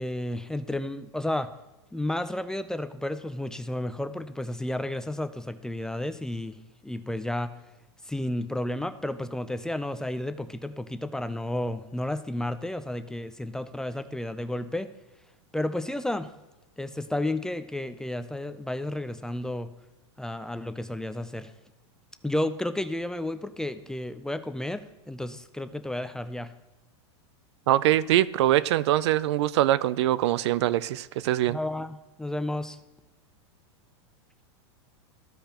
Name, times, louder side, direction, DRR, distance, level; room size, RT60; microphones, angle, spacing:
voice 1, 0.0-1.5 1.9-7.5 8.0-14.9 15.5-16.3 16.8-19.7 20.2-21.5 22.2-26.5 31.5-32.8, left 1 dB, 5° left, 0.4 m, -32 dB
voice 2, 27.7-31.6, right 14 dB, 70° right, 0.4 m, -23 dB
14.5 x 5.0 x 2.9 m
hypercardioid pair, 120°, 15 cm